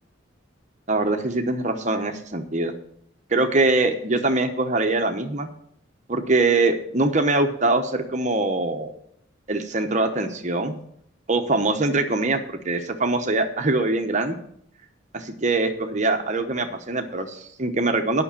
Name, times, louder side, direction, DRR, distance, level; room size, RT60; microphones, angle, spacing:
voice 1, 0.9-2.7 3.3-5.5 6.1-8.9 9.5-10.7 11.3-14.4 15.1-18.2, right 2 dB, 35° right, 6 dB, 0.9 m, -23 dB
10.0 x 6.0 x 8.5 m, 0.69 s
head